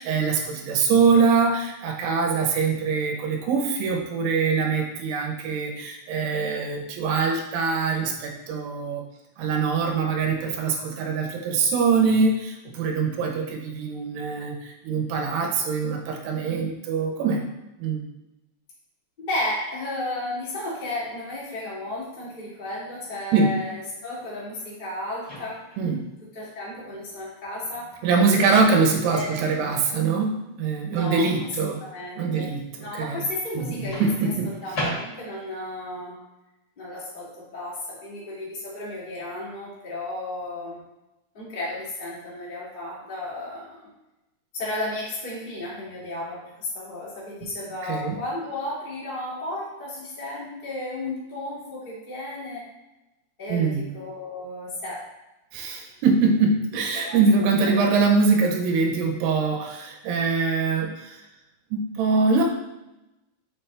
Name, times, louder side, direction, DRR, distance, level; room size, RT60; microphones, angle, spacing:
voice 1, 0.0-9.0 9.4-17.4 17.8-18.1 23.3-23.5 25.8-26.0 28.0-31.8 32.2-33.2 33.6-34.5 47.8-48.2 53.5-53.9 55.5-61.2 61.7-62.4, right 4 dB, 75° right, 1 dB, 2.5 m, -23 dB
voice 2, 19.2-25.6 26.3-28.0 29.1-29.4 30.9-31.3 31.6-32.5 32.8-34.1 34.4-36.2 36.8-40.8 41.3-43.9 44.5-52.7 53.4-55.0 56.9-57.2 57.6-57.9, left 1 dB, 75° left, -8 dB, 0.4 m, -33 dB
Microwave oven, 25.2-25.9 27.9-28.1 33.9-35.5, equal, 40° left, 1.7 m, -34 dB
6.1 x 6.1 x 3.3 m, 0.95 s
omnidirectional pair, 5.7 m